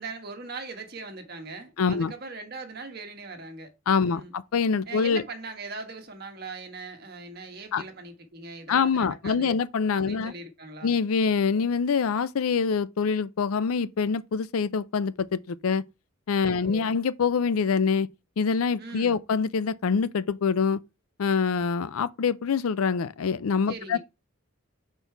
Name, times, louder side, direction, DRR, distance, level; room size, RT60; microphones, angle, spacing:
voice 1, 0.0-3.7 4.0-4.3 4.9-9.6 10.0-10.9 16.4-16.9 18.8-19.2 23.7-24.0, right 3 dB, 45° right, 1.4 m, -40 dB
voice 2, 1.8-2.1 3.9-5.2 7.7-7.8 8.7-10.3 10.8-15.8 16.3-18.1 18.4-20.8 21.2-24.0, left 5 dB, 80° left, 0.5 m, -25 dB
5.2 x 4.5 x 4.5 m
head